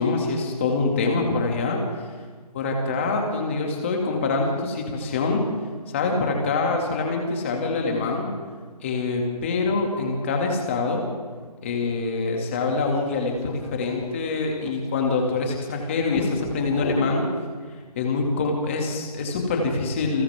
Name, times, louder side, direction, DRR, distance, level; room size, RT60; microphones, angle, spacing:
voice 1, 0.0-1.8 2.5-5.4 5.9-8.3 8.8-11.0 11.6-17.3 17.9-20.2, left 3 dB, 20° left, 1 dB, 2.6 m, -25 dB
sound 1, 12.5-15.6 16.0-17.3, left 3 dB, 40° left, 3.5 m, -35 dB
29.5 x 26.5 x 3.8 m, 1.6 s
figure-of-eight pair, 170°, 21 cm